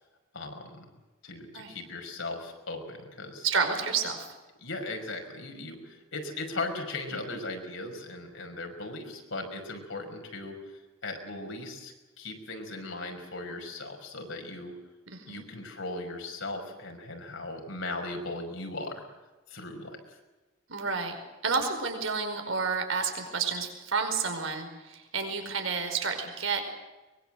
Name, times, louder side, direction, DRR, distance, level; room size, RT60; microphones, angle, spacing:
voice 1, 0.3-0.9 1.2-3.5 4.6-10.5 11.0-14.7 15.3-19.0 19.5-20.0, left 2 dB, 70° left, 3 dB, 5.7 m, -38 dB
voice 2, 3.4-4.3 15.1-15.4 20.7-26.6, right 5 dB, 75° right, 5 dB, 5.2 m, -30 dB
23.5 x 22.5 x 7.8 m, 1.1 s
head